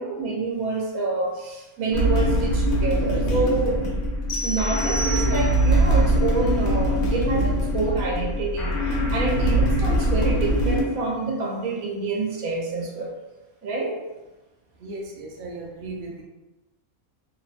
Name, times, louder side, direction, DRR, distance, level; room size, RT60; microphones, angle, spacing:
voice 1, 0.0-3.9 4.3-13.1 13.6-13.9, right 3 dB, 80° right, -1 dB, 1.1 m, -27 dB
sound 1, 1.9-10.8, right 1 dB, 60° left, 0.8 m, -22 dB
sound 2, 4.3-5.8, right 1 dB, 85° left, 1.1 m, -31 dB
voice 2, 14.8-16.2, right 2 dB, 55° right, -3 dB, 0.6 m, -36 dB
2.7 x 2.1 x 2.5 m, 1.1 s
omnidirectional pair, 1.5 m